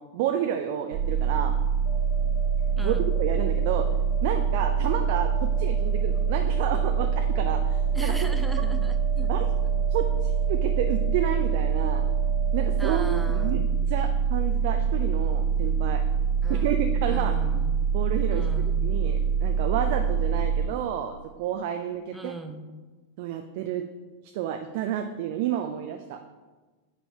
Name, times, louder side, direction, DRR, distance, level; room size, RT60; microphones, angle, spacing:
voice 1, 0.0-1.5 2.8-3.9 4.2-8.1 9.3-9.5 9.9-12.1 12.5-16.0 16.5-17.4 17.9-22.3 23.2-23.9 24.2-26.2, right 10 dB, 50° right, 6 dB, 0.4 m, -30 dB
sound 1, 0.9-20.6, right 6 dB, 85° right, 1.5 m, -25 dB
sound 2, 1.9-13.6, right 4 dB, 75° left, 1.0 m, -41 dB
voice 2, 2.8-3.1 7.9-9.3 12.8-13.9 16.4-17.9 18.3-18.8 22.1-22.6, right 1 dB, 5° right, 6 dB, 0.6 m, -39 dB
8.7 x 5.3 x 3.0 m, 1.3 s
figure-of-eight pair, 90°, 0 cm